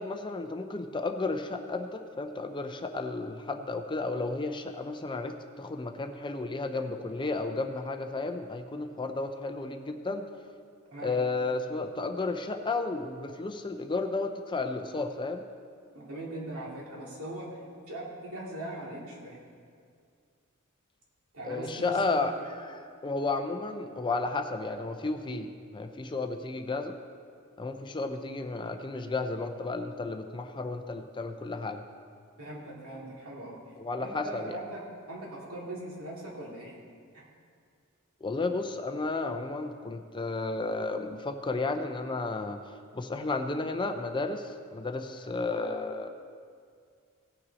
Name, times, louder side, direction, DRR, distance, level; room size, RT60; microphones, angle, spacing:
voice 1, 0.0-10.2 11.0-15.4 21.4-27.0 27.6-31.8 33.8-34.6 38.2-46.1, left 3 dB, 20° left, 6 dB, 0.5 m, -33 dB
voice 2, 15.9-17.6 17.9-19.4 21.3-22.4 32.4-33.6 34.0-36.8 37.1-37.3, right 1 dB, 70° right, -4 dB, 2.5 m, -40 dB
17.5 x 5.8 x 4.1 m, 2.2 s
head